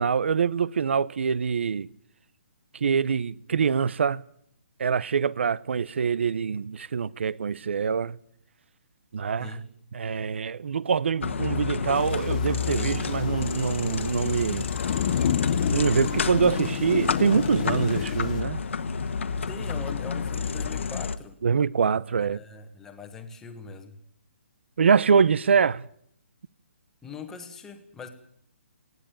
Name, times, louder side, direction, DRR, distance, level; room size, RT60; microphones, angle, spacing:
voice 1, 0.0-1.9 2.7-4.2 4.8-8.2 9.1-9.6 9.9-14.7 15.7-18.6 21.4-22.4 24.8-25.9, right 6 dB, 60° right, 0.8 m, -24 dB
sound 1, 11.2-21.2, left 5 dB, 65° left, 1.5 m, -29 dB
Thunder / Rain, 12.0-18.4, left 9 dB, 30° left, 0.8 m, -31 dB
voice 2, 19.5-21.3 22.2-24.0 27.0-28.1, left 5 dB, 5° left, 1.4 m, -41 dB
19.0 x 17.0 x 9.1 m
hypercardioid pair, 170°, 7 cm